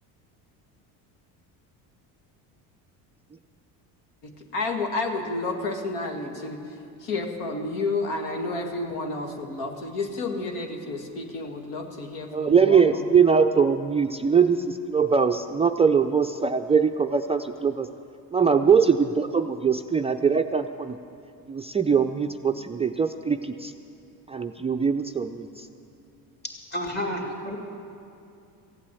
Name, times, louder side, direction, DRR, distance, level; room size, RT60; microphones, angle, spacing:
voice 1, 4.2-13.1, left 3 dB, 80° left, 4 dB, 1.8 m, -31 dB
voice 2, 12.3-17.9 18.3-21.0 21.5-23.7 24.3-25.7, right 6 dB, 15° right, 5 dB, 0.3 m, -22 dB
voice 3, 26.4-27.6, equal, 25° left, 0 dB, 2.5 m, -31 dB
15.5 x 8.5 x 8.4 m, 2.6 s
supercardioid pair, 90°, 41 cm